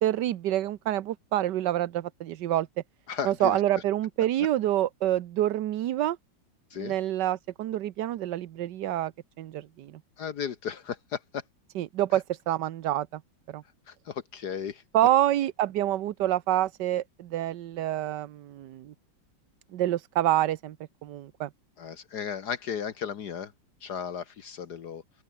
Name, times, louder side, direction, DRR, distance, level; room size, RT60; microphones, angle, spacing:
voice 1, 0.0-2.7 3.2-6.2 6.8-9.1 9.4-10.0 11.7-13.2 13.5-13.6 14.9-18.9 19.7-20.8 21.0-21.5, right 13 dB, 70° right, 1.4 m, -27 dB
voice 2, 3.1-3.6 6.7-6.9 10.2-11.4 13.9-14.8 21.8-23.5 23.8-25.0, left 7 dB, 60° left, 1.6 m, -35 dB
open air
omnidirectional pair, 2.1 m